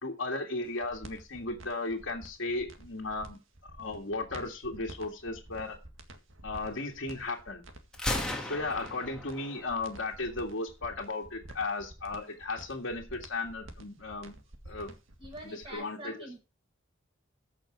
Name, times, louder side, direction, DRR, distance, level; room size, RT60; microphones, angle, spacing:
voice 1, 0.0-5.8 6.4-7.6 8.4-14.4 14.7-14.9 15.4-16.1, left 3 dB, 65° left, -1 dB, 1.9 m, -35 dB
sound 1, 0.6-15.7, right 1 dB, 85° right, 1.9 m, -50 dB
Gunshot gunfire, 7.9-9.9, left 1 dB, 5° left, 2.2 m, -35 dB
voice 2, 15.2-16.4, right 1 dB, 30° right, 1 dB, 5.3 m, -44 dB
14.5 x 6.1 x 5.1 m, 0.30 s
head